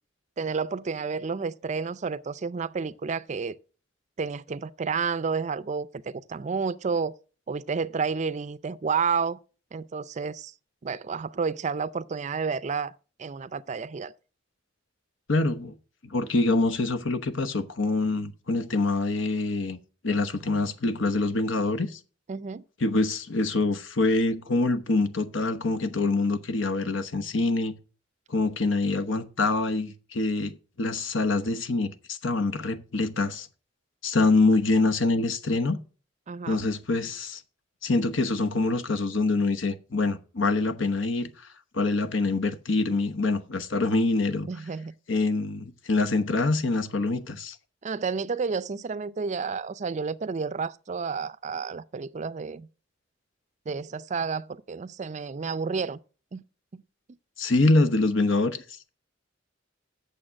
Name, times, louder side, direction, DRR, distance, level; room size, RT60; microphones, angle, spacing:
voice 1, 0.4-3.6 4.2-7.1 7.5-9.4 9.7-10.5 10.8-12.9 13.2-14.1 22.3-22.6 36.3-36.7 44.5-44.9 47.8-52.7 53.7-56.0 56.3-56.4 56.7-56.8, right 5 dB, 35° right, 0.4 m, -30 dB
voice 2, 15.3-15.7 16.0-19.8 20.0-22.0 22.8-27.7 28.3-33.5 34.0-35.8 36.5-37.4 37.8-41.3 41.7-44.5 45.1-47.6 57.4-58.6, left 3 dB, 80° left, 1.0 m, -25 dB
8.7 x 6.9 x 6.2 m
head